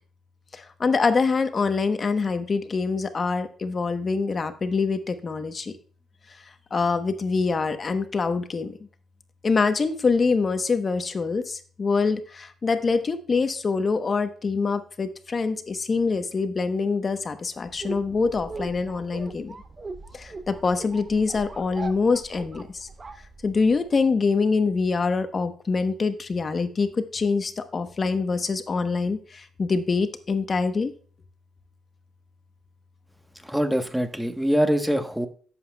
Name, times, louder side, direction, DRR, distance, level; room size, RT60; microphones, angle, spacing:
voice 1, 0.5-5.7 6.7-8.8 9.4-19.5 20.1-22.9 23.4-30.9, left 4 dB, 35° left, 9 dB, 1.0 m, -25 dB
sound 1, 17.6-23.9, right 3 dB, 30° right, 0.9 m, -40 dB
voice 2, 33.4-35.3, equal, 5° right, 7 dB, 1.2 m, -24 dB
11.0 x 7.8 x 2.3 m, 0.44 s
cardioid pair, 90°, 0 cm